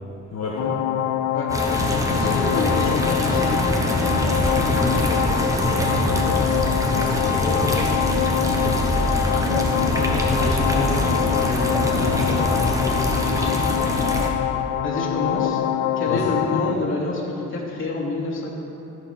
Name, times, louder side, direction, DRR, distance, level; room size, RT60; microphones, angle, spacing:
voice 1, 0.3-0.8 5.4-5.5 6.2-7.9 16.1-16.2, left 4 dB, 60° left, -4 dB, 1.4 m, -30 dB
sound 1, 0.6-16.8, left 12 dB, 85° left, 0.4 m, -24 dB
voice 2, 1.3-3.6 4.7-5.1 7.4-7.6 9.9-13.5 14.8-15.6 16.0-18.5, left 2 dB, 40° left, -5 dB, 2.8 m, -28 dB
sound 2, 1.5-14.3, equal, 10° right, 1.3 m, -24 dB
15.0 x 5.0 x 6.0 m, 3.0 s
cardioid pair, 90°, 30 cm